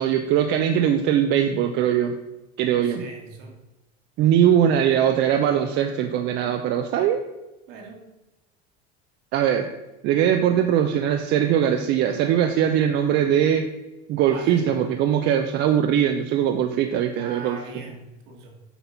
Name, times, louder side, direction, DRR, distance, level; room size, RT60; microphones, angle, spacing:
voice 1, 0.0-2.2 2.6-3.1 4.2-7.2 9.3-9.7 10.0-13.7 14.1-17.6, right 9 dB, 55° right, 6 dB, 0.6 m, -21 dB
voice 2, 2.8-3.6 7.7-8.0 14.3-14.7 17.1-18.5, right 3 dB, 75° right, 1 dB, 2.1 m, -41 dB
8.1 x 3.9 x 5.8 m, 1.0 s
supercardioid pair, 130°, 21 cm